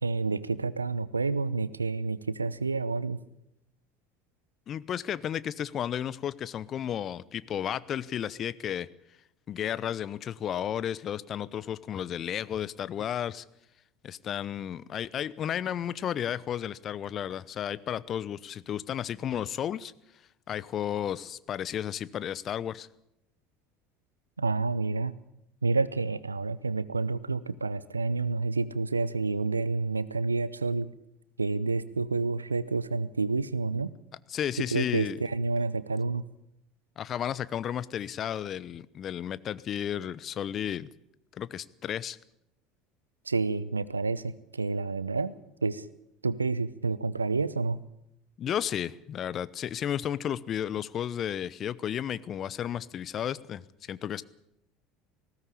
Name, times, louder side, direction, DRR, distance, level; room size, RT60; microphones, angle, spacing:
voice 1, 0.0-3.2 24.4-25.1 25.6-30.9 31.4-33.9 34.7-36.2 43.3-45.3 45.6-45.9 46.2-47.8, right 3 dB, 90° right, 18 dB, 0.7 m, -29 dB
voice 2, 4.7-8.9 9.5-13.4 14.0-19.9 20.5-22.9 34.3-35.2 37.0-40.9 41.4-42.2 48.4-53.6 53.9-54.2, left 10 dB, 40° left, 19 dB, 0.8 m, -33 dB
19.5 x 16.5 x 8.5 m, 0.83 s
figure-of-eight pair, 70°, 0 cm